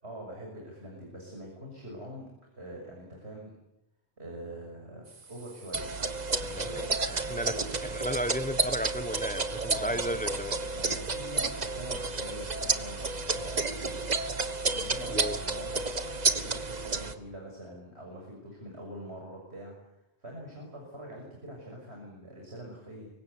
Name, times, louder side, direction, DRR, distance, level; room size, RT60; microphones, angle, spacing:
voice 1, 0.0-2.3 2.5-3.6 4.2-5.9 6.3-7.7 9.7-10.4 10.7-15.9 16.2-23.1, right 1 dB, 70° right, 6.6 m, -44 dB
sound 1, 5.7-17.1, right 3 dB, 40° right, 1.4 m, -31 dB
voice 2, 6.5-10.6 15.1-15.4, equal, 10° left, 1.0 m, -34 dB
25.0 x 23.5 x 8.3 m
omnidirectional pair, 1.1 m